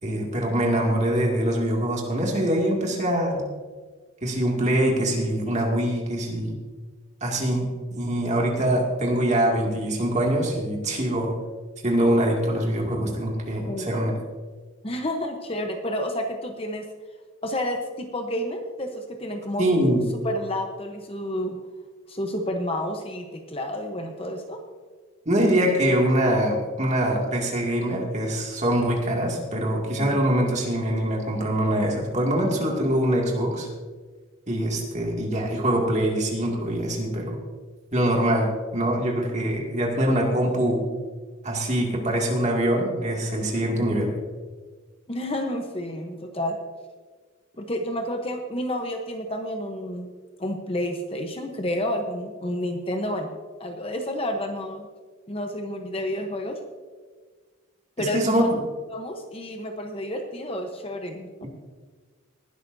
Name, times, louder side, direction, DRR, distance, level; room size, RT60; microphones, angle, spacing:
voice 1, 0.0-3.4 4.2-6.6 7.2-7.7 7.9-11.3 11.8-14.1 19.6-20.0 25.3-33.7 34.5-37.4 37.9-40.9 41.4-44.2 58.0-58.6, right 1 dB, 35° right, -1 dB, 2.3 m, -24 dB
voice 2, 13.7-14.0 14.8-16.9 17.4-21.6 22.1-24.6 30.0-30.2 45.1-46.6 47.6-50.1 50.4-53.3 53.6-54.9 55.3-56.6 58.0-58.5 58.9-61.5, left 1 dB, 25° left, 4 dB, 0.9 m, -30 dB
19.5 x 11.5 x 2.7 m, 1.4 s
head